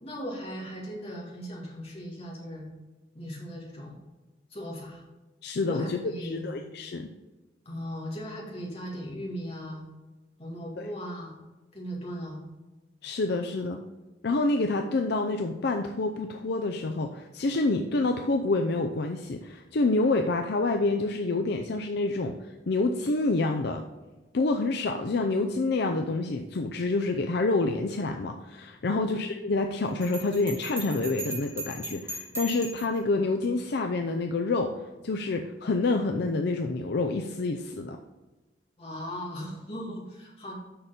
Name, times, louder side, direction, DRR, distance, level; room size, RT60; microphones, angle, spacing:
voice 1, 0.0-2.7 3.1-3.9 4.5-5.0 5.7-6.5 7.7-9.8 10.4-11.4 11.7-12.4 28.9-29.2 38.8-40.5, equal, 35° left, -2 dB, 2.3 m, -38 dB
voice 2, 5.4-7.1 10.8-10.9 13.0-13.8 14.2-22.3 22.7-23.8 24.3-38.0, left 3 dB, 65° left, 4 dB, 0.5 m, -27 dB
Bell, 30.0-33.0, right 2 dB, 15° right, 1.8 m, -38 dB
6.6 x 5.7 x 5.2 m, 1.1 s
head